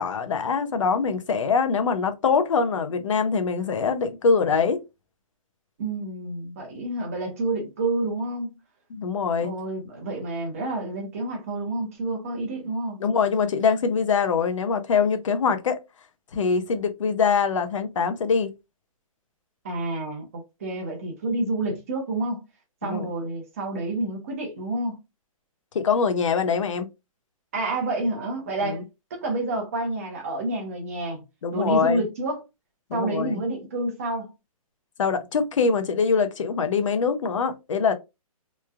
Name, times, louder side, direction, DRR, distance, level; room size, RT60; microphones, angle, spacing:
voice 1, 0.0-4.8 8.9-9.5 13.0-15.8 16.3-18.5 22.8-23.1 25.7-26.9 28.6-28.8 31.4-32.0 32.9-33.4 35.0-37.9, left 5 dB, 55° left, 0.6 m, -23 dB
voice 2, 5.8-8.5 9.4-13.0 19.6-22.4 22.8-25.0 27.5-28.8 29.1-31.2 31.5-32.4 32.9-34.3, right 2 dB, 25° right, 0.7 m, -29 dB
3.0 x 2.3 x 2.3 m
hypercardioid pair, 180°, 19 cm